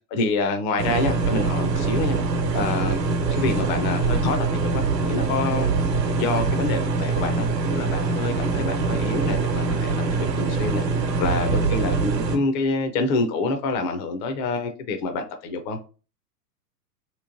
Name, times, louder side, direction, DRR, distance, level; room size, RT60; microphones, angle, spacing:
voice 1, 0.1-2.2 2.5-3.0 3.3-5.7 6.2-7.5 7.7-10.8 11.2-15.8, left 3 dB, 30° left, 0.4 m, -27 dB
sound 1, 0.8-12.4, right 4 dB, 80° right, 1.0 m, -24 dB
3.1 x 3.0 x 2.5 m
hypercardioid pair, 115°, 48 cm